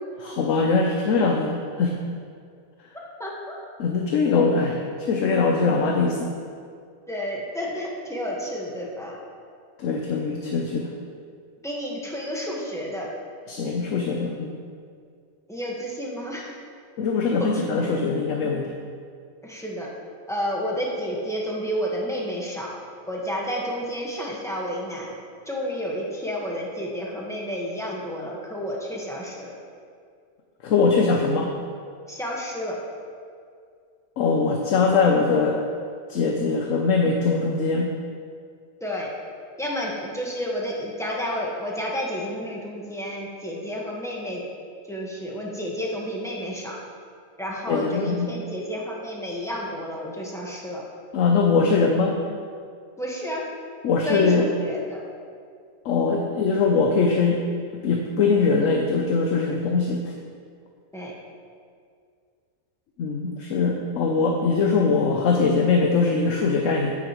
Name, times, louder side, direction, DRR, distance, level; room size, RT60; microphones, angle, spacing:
voice 1, 0.2-2.0 3.8-6.3 9.8-10.9 13.5-14.6 17.0-18.7 30.6-31.5 34.2-35.6 36.1-37.9 47.7-48.3 51.1-52.2 53.8-54.5 55.8-57.5 57.8-60.1 63.0-66.9, left 4 dB, 65° left, 1 dB, 1.0 m, -22 dB
voice 2, 2.9-3.6 7.1-9.2 11.6-13.1 15.5-16.5 17.4-17.9 19.4-19.9 20.3-22.7 23.1-25.1 25.5-29.5 32.1-32.8 38.8-39.1 39.6-44.4 44.9-46.7 47.4-50.8 53.0-53.4 54.0-55.0 60.9-61.1, equal, ahead, -4 dB, 1.2 m, -31 dB
10.5 x 8.8 x 3.1 m, 2.2 s
omnidirectional pair, 1.5 m